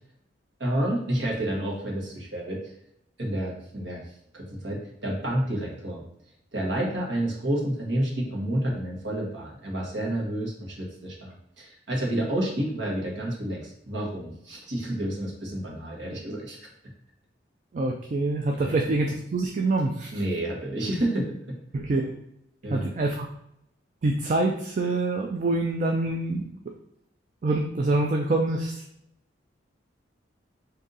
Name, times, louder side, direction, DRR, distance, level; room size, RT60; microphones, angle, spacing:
voice 1, 0.6-2.7 3.2-4.0 4.3-6.0 6.5-16.6 18.6-18.8 20.1-21.6 22.6-22.9, right 1 dB, 75° right, -2 dB, 1.2 m, -29 dB
voice 2, 17.7-20.1 21.7-22.1 22.7-23.3 24.0-26.5 27.4-28.8, right 2 dB, 40° right, 2 dB, 0.3 m, -25 dB
4.0 x 2.7 x 3.8 m, 0.77 s
head